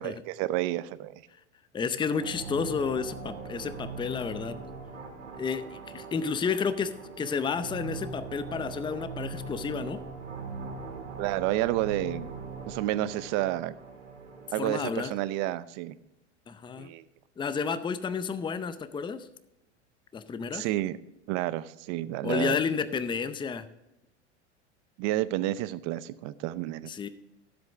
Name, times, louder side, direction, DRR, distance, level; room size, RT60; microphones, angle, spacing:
voice 1, 0.0-1.2 11.2-12.3 12.7-13.7 14.5-16.0 16.8-17.0 20.5-21.0 21.3-22.6 25.0-26.9, right 15 dB, 50° right, 16 dB, 0.7 m, -30 dB
voice 2, 1.7-4.6 5.4-10.0 14.6-15.1 16.5-16.9 17.4-19.3 20.1-20.7 22.2-23.7 26.8-27.1, left 6 dB, 15° left, 13 dB, 0.6 m, -31 dB
sound 1, 2.1-15.4, right 4 dB, 85° right, 1.8 m, -41 dB
13.0 x 8.0 x 3.5 m, 0.90 s
hypercardioid pair, 90°, 35 cm